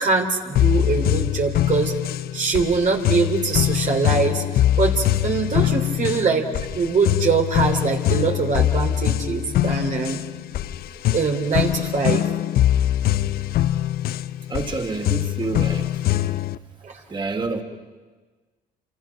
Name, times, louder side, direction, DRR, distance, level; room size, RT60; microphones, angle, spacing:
voice 1, 0.0-1.9 2.3-6.4 6.7-10.2 11.1-12.2 16.8-16.9, right 4 dB, 50° right, 3 dB, 3.2 m, -23 dB
sound 1, 0.6-16.6, left 12 dB, 65° left, 0.7 m, -23 dB
voice 2, 14.5-15.8 17.1-17.6, right 3 dB, 30° right, 5 dB, 3.3 m, -27 dB
28.5 x 26.5 x 5.8 m, 1.3 s
supercardioid pair, 75°, 17 cm